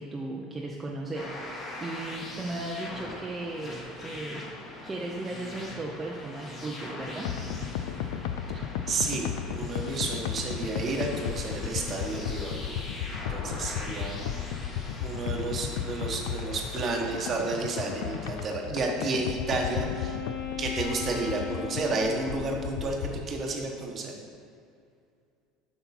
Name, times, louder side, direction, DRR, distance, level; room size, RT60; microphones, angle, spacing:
voice 1, 0.0-4.5 4.8-7.3, right 2 dB, 15° right, -3 dB, 0.6 m, -36 dB
sound 1, 1.1-18.5, left 2 dB, 30° left, 1.4 m, -42 dB
sound 2, 7.2-23.3, left 9 dB, 80° left, 0.3 m, -35 dB
voice 2, 8.5-12.5 13.3-14.2 15.0-20.2 20.6-24.1, right 3 dB, 30° right, 1 dB, 1.0 m, -31 dB
Wind instrument woodwind instrument, 18.6-23.0, left 8 dB, 50° left, 1.2 m, -38 dB
7.9 x 5.8 x 4.2 m, 2.4 s
cardioid pair, 150°, 0 cm